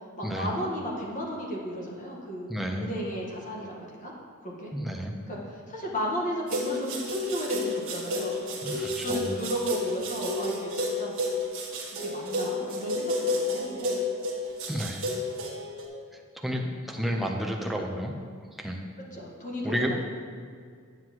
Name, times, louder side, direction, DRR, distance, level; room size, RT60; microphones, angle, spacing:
voice 1, 0.2-2.5 2.8-4.1 4.4-4.7 5.3-10.7 11.0-11.1 12.0-14.0 19.1-20.0, equal, 35° left, -3 dB, 1.4 m, -34 dB
voice 2, 2.5-2.9 4.7-5.1 8.6-9.3 14.7-15.0 16.4-18.1 18.6-18.8 19.6-19.9, equal, ahead, 0 dB, 0.7 m, -31 dB
sound 1, 6.5-15.9, left 1 dB, 65° right, 1.6 m, -31 dB
9.5 x 7.8 x 3.0 m, 2.1 s
head